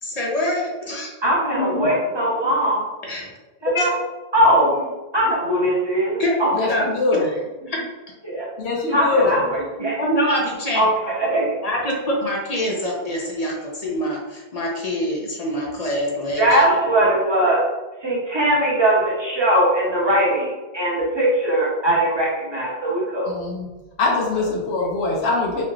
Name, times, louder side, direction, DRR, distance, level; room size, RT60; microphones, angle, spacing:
voice 1, 0.0-1.1 3.0-3.3 3.7-3.9 6.2-6.4 6.7-6.8 7.7-7.8 10.0-10.8 11.6-16.8, equal, 50° left, -2 dB, 0.5 m, -25 dB
voice 2, 1.2-2.8 3.7-3.9 4.3-6.7 8.2-8.5 8.9-10.0 10.7-10.9 11.2-11.6 16.4-17.6 18.0-23.3, right 1 dB, 30° right, -6 dB, 0.8 m, -20 dB
voice 3, 6.5-7.3 8.6-9.4 23.3-23.7 24.0-25.6, left 3 dB, 85° left, -1 dB, 0.9 m, -22 dB
3.2 x 2.8 x 2.3 m, 1.1 s
omnidirectional pair, 1.0 m